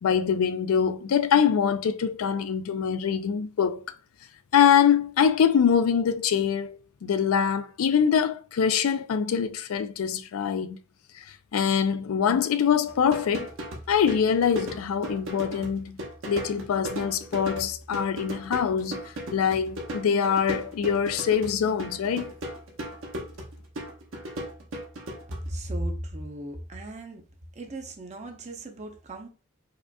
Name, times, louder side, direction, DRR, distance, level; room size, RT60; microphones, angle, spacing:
voice 1, 0.0-3.9 4.5-10.8 11.2-11.3 11.5-13.5 13.9-16.0 16.3-19.0 19.3-22.3, left 7 dB, 75° left, 0.4 m, -24 dB
sound 1, 12.9-25.5, right 1 dB, 65° right, 0.9 m, -37 dB
voice 2, 25.5-27.2 27.5-29.3, right 1 dB, 35° right, 0.7 m, -36 dB
4.9 x 2.4 x 2.2 m
head